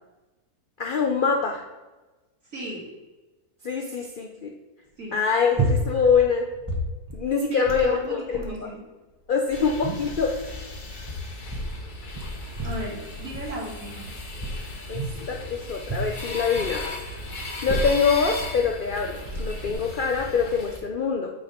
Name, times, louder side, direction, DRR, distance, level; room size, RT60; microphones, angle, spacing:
voice 1, 0.8-1.6 3.6-4.5 5.1-6.5 7.1-8.7 9.3-10.3 14.9-16.9 17.6-21.3, left 5 dB, 60° left, 2 dB, 0.5 m, -24 dB
voice 2, 2.5-2.8 5.0-5.2 7.5-8.8 9.6-9.7 12.6-14.1, right 1 dB, 55° right, -5 dB, 2.8 m, -35 dB
sound 1, 5.5-6.2 6.5-7.3 7.6-7.9 8.3-8.6 9.3-10.2 10.9-11.7 12.1-12.9 13.3-13.6 14.4-15.2 15.8-16.8 17.4-18.1 18.8-18.9 19.2-19.7, right 1 dB, 15° right, 1.1 m, -30 dB
sound 2, 9.5-20.8, left 2 dB, 35° left, 1.0 m, -37 dB
8.8 x 3.5 x 5.5 m, 1.2 s
omnidirectional pair, 1.7 m